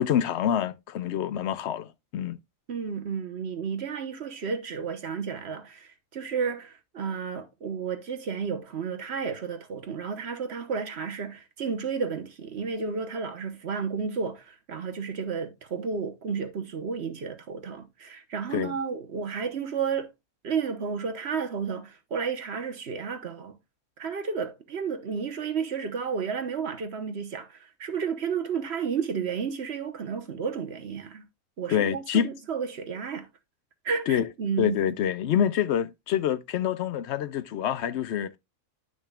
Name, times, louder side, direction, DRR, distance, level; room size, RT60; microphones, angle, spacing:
voice 1, 0.0-2.4 18.5-18.7 31.7-32.3 34.1-34.3 34.6-38.4, left 9 dB, 65° left, 0.8 m, -26 dB
voice 2, 2.7-20.1 20.4-23.6 24.0-31.2 31.6-33.3 33.8-34.8, right 6 dB, 55° right, 1.3 m, -32 dB
10.0 x 6.2 x 2.3 m
omnidirectional pair, 1.4 m